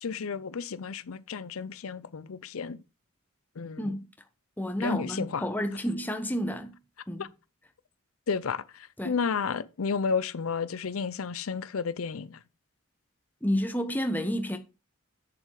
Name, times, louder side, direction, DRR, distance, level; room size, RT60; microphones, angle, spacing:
voice 1, 0.0-2.8 3.6-3.8 4.8-5.4 7.2-7.3 8.3-8.6 9.0-12.4, left 5 dB, 90° left, 0.6 m, -32 dB
voice 2, 4.6-6.8 7.1-7.3 9.0-9.2 13.4-14.6, equal, 10° left, 1.0 m, -30 dB
7.9 x 7.0 x 4.8 m
head